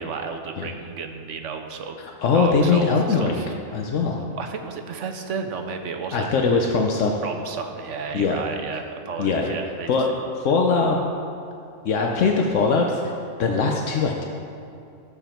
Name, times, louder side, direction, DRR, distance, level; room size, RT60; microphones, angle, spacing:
voice 1, 0.0-2.0 2.3-3.5 4.2-6.3 7.2-9.9, right 5 dB, 75° right, 6 dB, 1.1 m, -32 dB
voice 2, 2.2-3.4 3.7-4.2 6.1-7.1 8.1-8.4 9.2-9.6 9.9-10.1 10.4-11.0 11.8-13.1 13.4-14.3, left 4 dB, 75° left, 1 dB, 1.1 m, -21 dB
12.5 x 7.1 x 4.4 m, 2.4 s
omnidirectional pair, 1.3 m